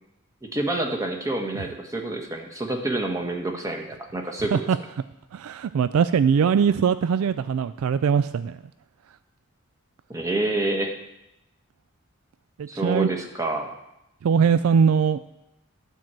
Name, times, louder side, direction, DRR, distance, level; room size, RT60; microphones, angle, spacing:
voice 1, 0.4-4.5 10.1-10.9 12.7-13.7, right 2 dB, 15° right, 2 dB, 1.2 m, -28 dB
voice 2, 5.3-8.6 12.6-13.1 14.2-15.2, right 6 dB, 70° right, 13 dB, 0.3 m, -21 dB
11.5 x 4.6 x 7.5 m, 0.87 s
head